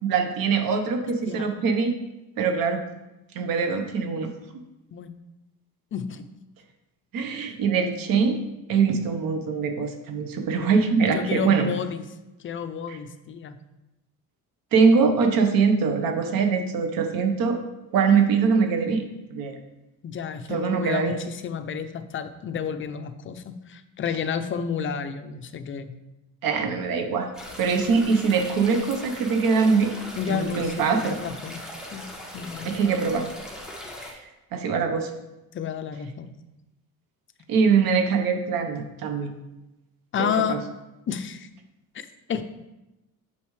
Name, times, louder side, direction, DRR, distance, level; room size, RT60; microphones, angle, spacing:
voice 1, 0.0-1.9 2.4-2.8 3.3-4.3 7.1-8.4 8.7-11.7 12.9-13.0 14.7-17.6 17.9-19.0 19.3-19.6 20.5-21.2 26.4-27.3 27.6-29.9 30.3-31.2 32.6-33.3 34.0-34.2 34.5-35.1 37.5-39.3 40.2-40.6, right 5 dB, 75° right, 5 dB, 1.1 m, -23 dB
voice 2, 5.9-6.2 11.1-12.0 12.4-13.6 20.0-25.9 30.2-31.6 31.9-32.1 32.3-32.7 35.5-36.3 40.1-40.6 41.1-41.5 41.9-42.4, left 7 dB, 35° left, 10 dB, 0.5 m, -31 dB
sound 1, 27.3-34.1, equal, ahead, 1.2 m, -40 dB
8.5 x 6.9 x 3.2 m, 1.0 s
cardioid pair, 155°, 35 cm